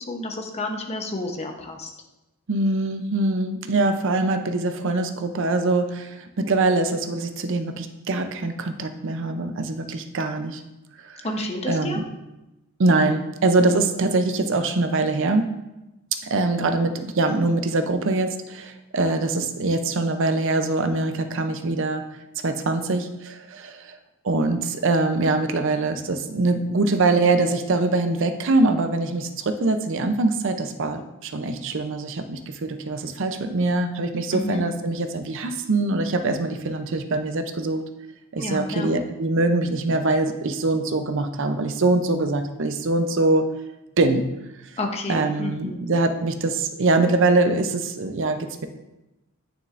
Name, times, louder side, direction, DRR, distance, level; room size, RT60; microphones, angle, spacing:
voice 1, 0.1-1.9 11.2-12.0 34.3-34.7 38.4-38.9 44.8-45.8, left 2 dB, 30° left, 3 dB, 0.8 m, -30 dB
voice 2, 2.5-10.6 11.0-11.3 11.7-12.0 12.8-15.5 16.2-22.0 22.4-24.0 24.2-37.8 38.3-43.5 44.0-44.3 45.1-48.7, right 2 dB, 60° right, 8 dB, 0.6 m, -23 dB
9.3 x 6.4 x 2.5 m, 0.97 s
head